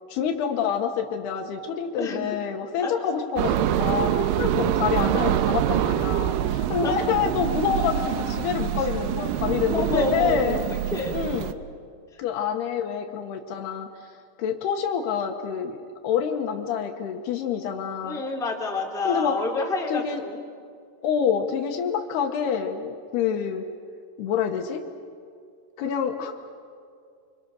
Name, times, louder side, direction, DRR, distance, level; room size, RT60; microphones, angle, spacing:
voice 1, 0.1-10.6 11.1-11.5 12.2-13.9 14.4-18.2 19.0-19.4 19.9-20.2 21.0-23.7 24.2-24.8 25.8-26.4, left 7 dB, 75° left, 5 dB, 3.0 m, -27 dB
voice 2, 2.0-2.4 2.8-2.9 6.7-6.9 9.7-10.6 10.9-11.1 18.0-20.4, left 3 dB, ahead, 0 dB, 1.5 m, -29 dB
sound 1, 3.4-11.5, right 12 dB, 85° right, 2.0 m, -25 dB
30.0 x 25.5 x 6.4 m, 2.3 s
omnidirectional pair, 5.0 m